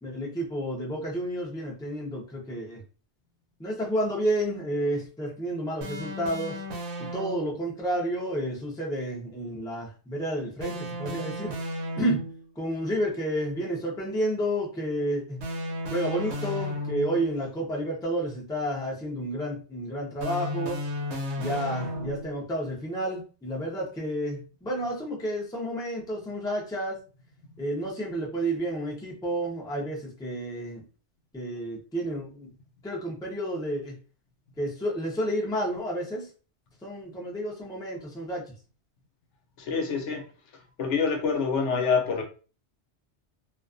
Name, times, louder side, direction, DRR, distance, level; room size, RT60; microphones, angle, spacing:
voice 1, 0.0-2.8 3.6-6.6 7.0-11.5 12.0-12.2 12.6-15.4 15.9-20.8 21.4-27.0 27.6-30.8 31.3-32.5 32.8-33.9 34.6-36.3 36.8-38.4, right 1 dB, 5° left, 0.5 m, -30 dB
sound 1, 5.8-7.6 10.6-12.5 15.4-17.3 20.2-22.4, left 1 dB, 70° right, 0.9 m, -34 dB
voice 2, 39.6-40.3 40.8-42.2, left 5 dB, 80° left, 0.9 m, -26 dB
2.4 x 2.3 x 2.5 m
omnidirectional pair, 1.2 m